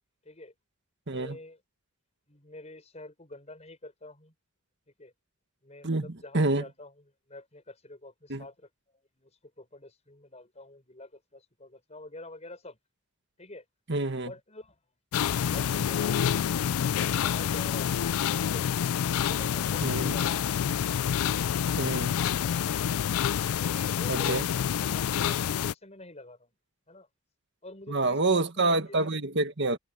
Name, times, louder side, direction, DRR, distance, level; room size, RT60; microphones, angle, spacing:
voice 1, 0.2-0.5 1.1-1.6 2.3-4.3 5.0-5.1 5.6-8.7 9.1-12.8 13.4-13.6 14.2-14.8 16.9-18.7 19.2-20.7 23.6-26.5 26.9-27.1 27.6-29.1, left 2 dB, 30° left, 6.2 m, -47 dB
voice 2, 1.1-1.4 5.8-6.1 6.3-6.6 8.3-8.4 13.9-14.3 19.8-20.2 21.8-22.2 24.1-24.4 27.9-29.8, right 2 dB, 55° right, 1.6 m, -27 dB
sound 1, 15.1-25.7, left 8 dB, 80° left, 0.4 m, -28 dB
head